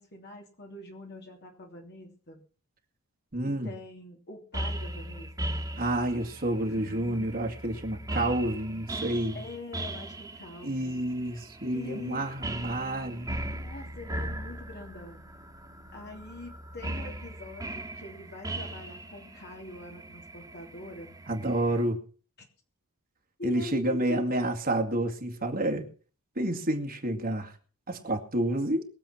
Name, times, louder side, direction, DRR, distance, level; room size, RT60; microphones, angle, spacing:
voice 1, 0.0-2.4 3.4-5.6 6.7-7.4 8.9-11.1 11.7-12.3 13.4-15.2 15.9-21.2 23.4-24.6, left 1 dB, 50° left, 3.0 m, -44 dB
voice 2, 3.3-3.7 5.8-9.4 10.6-13.5 21.3-22.0 23.4-25.9 26.4-27.5 27.9-28.9, right 1 dB, 40° right, 2.2 m, -29 dB
sound 1, 4.5-21.8, right 1 dB, 15° right, 2.2 m, -39 dB
22.0 x 7.6 x 5.9 m
head